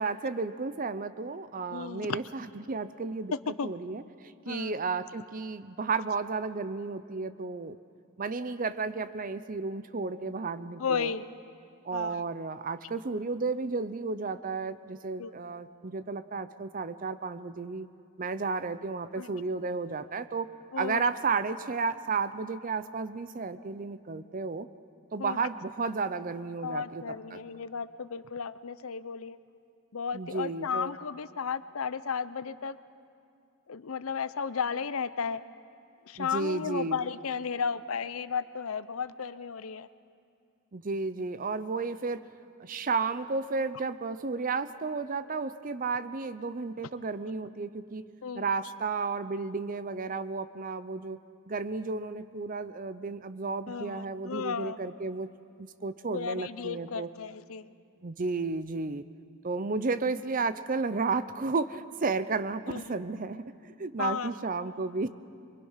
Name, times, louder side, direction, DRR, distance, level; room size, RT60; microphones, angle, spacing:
voice 1, 0.0-3.3 3.6-7.8 8.2-11.1 11.8-17.9 18.2-20.5 20.7-24.7 25.1-27.0 27.3-27.4 30.1-30.9 36.2-37.0 40.7-42.2 42.6-48.0 48.3-51.2 51.5-55.3 55.6-57.1 58.0-59.0 59.4-65.1, right 4 dB, 40° right, 13 dB, 0.6 m, -33 dB
voice 2, 1.7-2.2 3.3-3.7 4.5-4.7 10.8-11.3 11.9-12.2 15.2-15.3 19.2-19.4 20.7-21.1 25.2-25.4 26.6-29.4 29.9-32.8 33.7-35.4 36.1-39.9 48.2-48.5 53.7-54.8 56.1-57.7 62.7-62.9 64.0-64.3, left 6 dB, 90° left, 15 dB, 0.6 m, -34 dB
24.0 x 23.5 x 5.7 m, 2.4 s
head